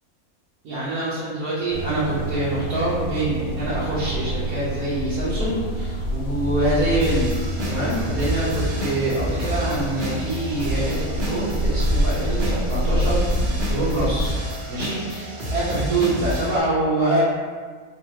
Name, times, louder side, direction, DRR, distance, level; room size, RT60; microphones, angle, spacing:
voice 1, 0.6-7.3 7.6-14.3 14.7-17.2, right 1 dB, 85° right, -10 dB, 1.3 m, -25 dB
sound 1, 1.7-14.3, equal, 75° left, 1.0 m, -27 dB
sound 2, 7.0-16.6, right 1 dB, 50° right, 0.6 m, -29 dB
3.2 x 2.4 x 2.8 m, 1.5 s
omnidirectional pair, 1.5 m